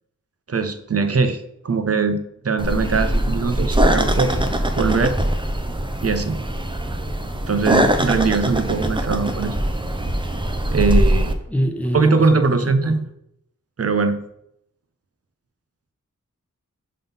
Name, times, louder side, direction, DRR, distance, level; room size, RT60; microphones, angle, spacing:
voice 1, 0.5-4.4 4.8-5.1 6.0-6.4 7.5-9.6 10.7-11.3 11.9-13.0 13.8-14.2, right 4 dB, 50° right, 9 dB, 0.7 m, -21 dB
sound 1, 2.6-11.3, right 1 dB, 15° right, 0.6 m, -22 dB
voice 2, 11.5-13.0, equal, 5° left, 4 dB, 1.0 m, -25 dB
5.3 x 3.8 x 5.5 m, 0.76 s
wide cardioid pair, 60°, 31 cm